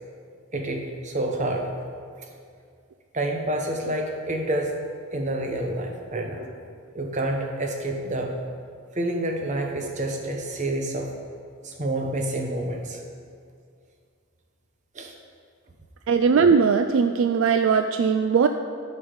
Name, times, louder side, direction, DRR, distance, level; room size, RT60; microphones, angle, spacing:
voice 1, 0.5-1.7 3.1-4.7 5.1-6.5 6.9-8.4 8.9-11.1 11.6-13.0 14.9-15.1, right 1 dB, 35° right, 2 dB, 0.9 m, -28 dB
voice 2, 16.1-18.5, right 6 dB, 60° right, 8 dB, 0.3 m, -20 dB
12.5 x 5.4 x 5.1 m, 2.2 s
head